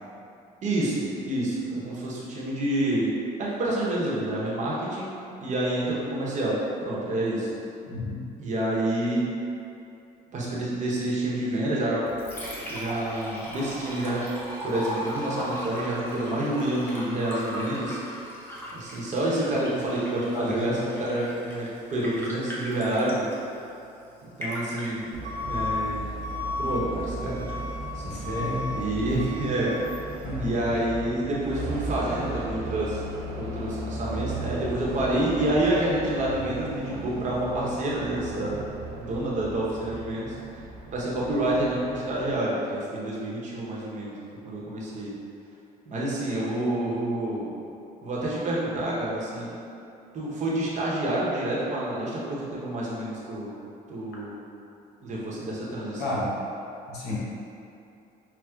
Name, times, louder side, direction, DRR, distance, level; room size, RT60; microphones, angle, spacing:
voice 1, 0.6-3.1 3.4-5.1 5.4-6.6 6.8-7.5 8.4-9.2 10.3-12.1 12.6-14.2 14.6-18.0 18.7-23.3 24.4-25.1 25.5-26.2 26.6-27.7 27.9-28.2 28.7-29.7 30.4-33.0 33.4-38.6 39.0-40.3 40.9-44.1 44.4-45.2 45.9-47.5 48.0-49.5 50.1-53.5 53.9-54.4 55.0-56.0, right 1 dB, 45° right, -6 dB, 0.8 m, -28 dB
voice 2, 7.9-8.2 20.3-20.8 26.3-26.6 28.0-28.7 30.2-30.6 56.0-56.4 56.9-57.2, left 1 dB, 75° left, -6 dB, 0.9 m, -31 dB
Liquid, 11.9-30.9, equal, 15° left, 0.7 m, -39 dB
Truck / Alarm, 25.1-42.4, equal, 80° right, 0.5 m, -35 dB
5.7 x 2.0 x 2.3 m, 2.7 s
cardioid pair, 110°, 17 cm